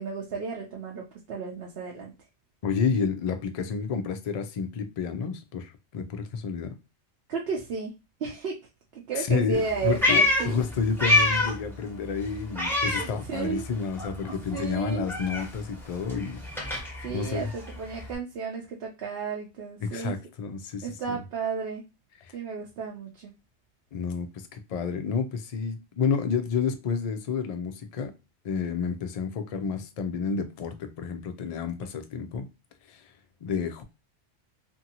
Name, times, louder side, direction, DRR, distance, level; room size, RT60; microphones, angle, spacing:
voice 1, 0.0-2.1 7.3-7.9 8.2-8.6 9.1-10.6 13.0-13.7 14.5-15.1 17.0-20.1 20.8-21.8 22.3-23.3, right 5 dB, 65° right, 0.8 m, -33 dB
voice 2, 2.6-6.7 9.1-16.4 17.1-17.5 19.8-21.2 22.2-22.4 23.9-28.1 28.4-32.5 32.9-33.1 33.4-33.8, left 5 dB, 65° left, 0.3 m, -30 dB
Meow, 9.5-11.7 12.0-13.7 14.0-18.1, left 2 dB, ahead, 0.7 m, -27 dB
2.6 x 2.6 x 2.7 m
omnidirectional pair, 1.2 m